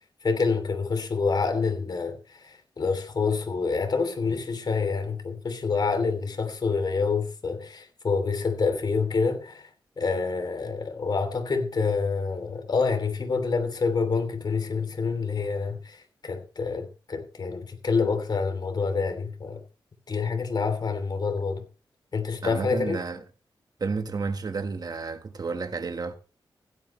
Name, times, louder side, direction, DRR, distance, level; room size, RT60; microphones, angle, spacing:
voice 1, 0.2-9.7 10.0-19.6 20.1-21.6 22.1-23.0, left 4 dB, 55° left, 3.0 m, -27 dB
voice 2, 22.4-23.2 23.8-26.1, right 4 dB, 50° right, 1.4 m, -31 dB
16.0 x 12.0 x 3.2 m
wide cardioid pair, 95°, 8 cm